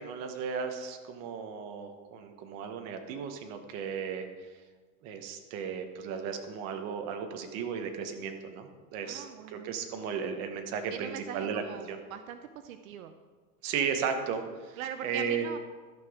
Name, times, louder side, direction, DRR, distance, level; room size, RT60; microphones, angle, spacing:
voice 1, 0.0-4.3 5.0-11.6 11.9-12.0 13.6-15.5, right 6 dB, 40° right, 6 dB, 1.1 m, -35 dB
voice 2, 9.0-9.7 10.9-13.2 14.8-15.6, right 9 dB, 70° right, 9 dB, 0.7 m, -41 dB
13.0 x 6.0 x 4.9 m, 1.4 s
supercardioid pair, 150°, 42 cm